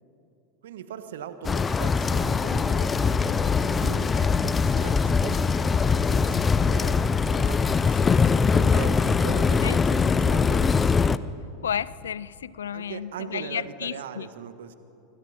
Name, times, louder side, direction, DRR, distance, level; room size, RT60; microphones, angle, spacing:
voice 1, 0.6-7.0 7.3-10.7 12.7-14.8, right 8 dB, 70° right, 10 dB, 1.5 m, -40 dB
sound 1, 1.4-11.2, left 5 dB, 20° left, 0.7 m, -22 dB
voice 2, 11.6-14.3, left 8 dB, 80° left, 21 dB, 0.5 m, -32 dB
26.5 x 25.0 x 4.4 m, 2.8 s
hypercardioid pair, 85°, 0 cm